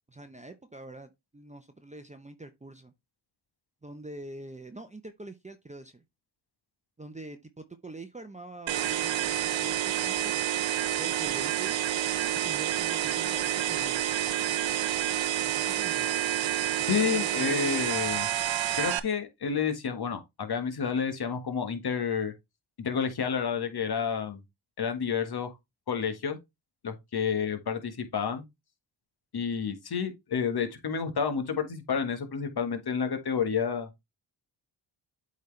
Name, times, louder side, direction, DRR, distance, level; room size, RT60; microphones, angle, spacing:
voice 1, 0.1-2.9 3.8-6.0 7.0-10.4 11.0-11.8 12.4-14.2 15.5-16.2 16.8-17.7, right 2 dB, 15° right, 0.8 m, -45 dB
sound 1, 8.7-19.0, right 12 dB, 70° right, 0.8 m, -29 dB
voice 2, 16.9-18.3 18.8-22.3 22.8-24.4 24.8-25.5 25.9-26.4 26.8-28.4 29.3-33.9, left 6 dB, 50° left, 1.5 m, -30 dB
7.9 x 4.2 x 3.2 m
cardioid pair, 55°, 48 cm